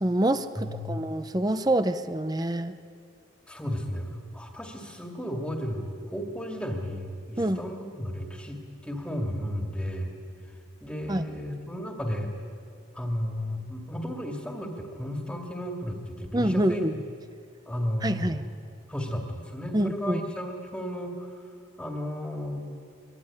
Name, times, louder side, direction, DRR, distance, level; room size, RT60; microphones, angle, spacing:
voice 1, 0.0-2.7 7.4-7.6 11.1-11.2 16.3-16.9 18.0-18.5 19.7-20.2, right 1 dB, 20° right, 10 dB, 0.7 m, -26 dB
voice 2, 0.6-1.0 3.5-10.1 10.8-12.3 12.9-17.0 17.7-18.4 18.9-21.3 21.8-22.6, equal, 5° left, 1 dB, 2.3 m, -33 dB
25.5 x 22.0 x 9.8 m, 2.3 s
head